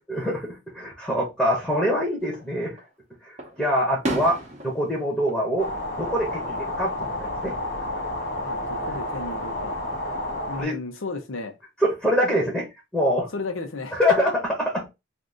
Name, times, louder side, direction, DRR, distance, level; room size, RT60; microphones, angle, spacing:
voice 1, 0.1-2.8 3.6-5.7 6.0-7.6 10.6-10.8 11.8-12.7 12.9-13.3 13.9-14.8, equal, 5° left, 0.9 m, -24 dB
Fireworks, 2.2-2.9 3.4-6.5 6.8-7.4 8.9-9.7, right 1 dB, 35° right, 0.8 m, -36 dB
sound 1, 5.6-10.6, left 1 dB, 55° left, 1.3 m, -30 dB
voice 2, 8.4-9.8 10.5-11.6 13.3-14.0, left 3 dB, 90° left, 0.8 m, -34 dB
2.7 x 2.6 x 3.5 m
head